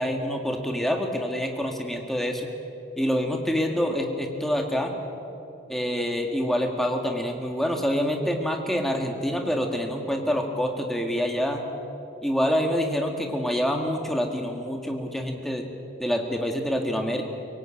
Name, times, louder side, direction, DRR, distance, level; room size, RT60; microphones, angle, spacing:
voice 1, 0.0-2.5 3.0-4.9 5.7-11.6 12.2-15.7 16.0-17.2, equal, ahead, 2 dB, 1.9 m, -26 dB
23.5 x 18.0 x 8.7 m, 2.9 s
head